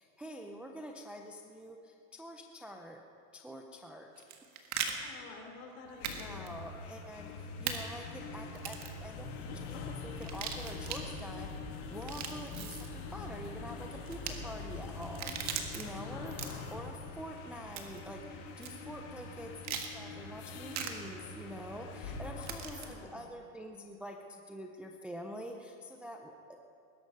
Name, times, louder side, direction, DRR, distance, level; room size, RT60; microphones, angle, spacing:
voice 1, 0.0-3.0 3.3-4.1 6.2-11.6 11.9-16.4 16.7-26.7, equal, 5° right, 2 dB, 0.4 m, -46 dB
sound 1, 4.2-4.9 6.0-6.2 6.5-6.6 7.7-7.8 8.5-9.0 10.2-11.0 11.9-12.9 14.1-14.3 15.0-15.8 16.3-16.7 17.8-18.1 18.6-18.7 19.6-19.9 20.7-20.9 22.4-22.9, right 8 dB, 40° right, 1.7 m, -39 dB
voice 2, 4.8-6.5 15.8-16.5 22.6-23.3, left 4 dB, 55° left, 0 dB, 4.3 m, -50 dB
sound 2, 5.8-23.0, left 4 dB, 80° left, 2.7 m, -44 dB
20.5 x 11.5 x 5.3 m, 2.5 s
supercardioid pair, 145°, 43 cm